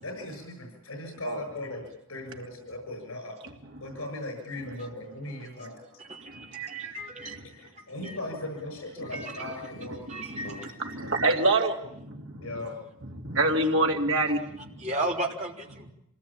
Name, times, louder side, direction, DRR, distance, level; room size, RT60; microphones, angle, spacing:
voice 1, 0.0-3.4 3.8-5.7 7.2-11.5 12.4-12.7, left 1 dB, 85° left, 4 dB, 7.1 m, -38 dB
voice 2, 6.1-7.4 8.0-8.2 9.1-9.5 10.1-10.6 14.8-15.9, right 2 dB, 30° right, 0 dB, 3.4 m, -34 dB
voice 3, 10.1-12.5 13.1-14.7, right 2 dB, 70° right, 1 dB, 2.9 m, -27 dB
26.5 x 19.0 x 8.8 m, 0.79 s
head